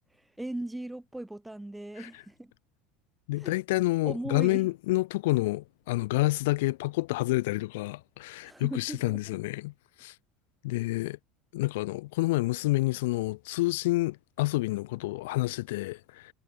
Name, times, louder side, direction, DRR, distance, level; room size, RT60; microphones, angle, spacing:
voice 1, 0.4-2.5 3.4-3.5 4.0-4.7 8.4-9.4, right 1 dB, 5° right, 5.9 m, -38 dB
voice 2, 3.3-9.7 10.0-10.1 10.6-11.2 11.5-16.3, left 20 dB, 80° left, 7.2 m, -28 dB
supercardioid pair, 130°, 0 cm